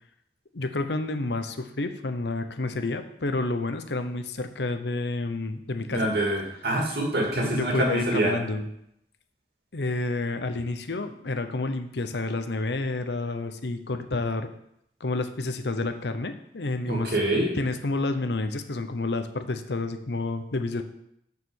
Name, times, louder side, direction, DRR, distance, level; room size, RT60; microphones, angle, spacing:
voice 1, 0.5-6.1 7.3-8.7 9.7-14.5 15.0-17.1 17.5-20.8, left 2 dB, 70° left, 9 dB, 0.8 m, -29 dB
voice 2, 5.9-8.3 16.9-17.5, right 1 dB, 60° right, -1 dB, 2.5 m, -25 dB
6.8 x 6.7 x 6.4 m, 0.75 s
head